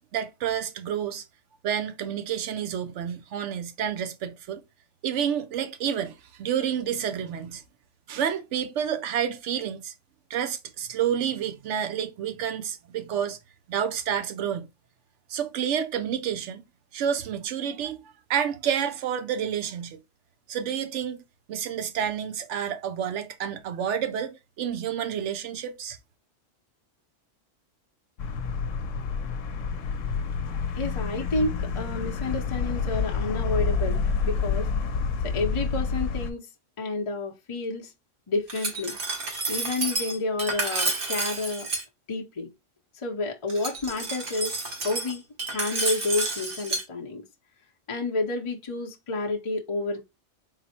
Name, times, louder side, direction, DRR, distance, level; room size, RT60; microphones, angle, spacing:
voice 1, 0.1-1.2 1.6-4.6 5.0-7.6 8.1-9.9 10.3-13.4 13.7-14.7 15.3-16.6 16.9-18.0 18.3-20.0 20.5-21.2 21.5-26.0, right 8 dB, 70° right, 0.9 m, -29 dB
sound 1, 28.2-36.3, left 5 dB, 80° left, 1.0 m, -28 dB
voice 2, 30.8-34.7 35.2-36.5 36.8-37.9 38.3-39.0 39.5-41.7 42.1-42.5 43.0-44.5 44.8-47.2 47.9-50.0, left 2 dB, 30° left, 0.6 m, -30 dB
Glass, 38.5-41.8 43.5-46.8, right 3 dB, 50° right, 1.1 m, -30 dB
4.0 x 2.1 x 4.2 m
omnidirectional pair, 1.3 m